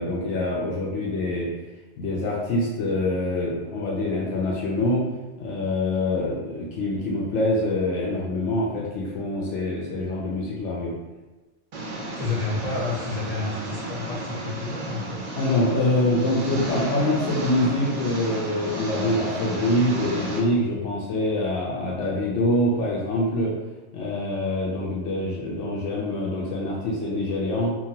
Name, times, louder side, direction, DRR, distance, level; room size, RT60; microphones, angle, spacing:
voice 1, 0.0-1.5 2.0-5.0 5.4-10.9 15.4-23.5 23.9-27.8, left 1 dB, 90° left, -3 dB, 0.9 m, -25 dB
Engine, 11.7-20.4, right 1 dB, 60° right, 0.4 m, -33 dB
voice 2, 12.2-15.2, left 3 dB, 40° left, -6 dB, 0.7 m, -30 dB
2.8 x 2.2 x 2.8 m, 1.2 s
omnidirectional pair, 1.2 m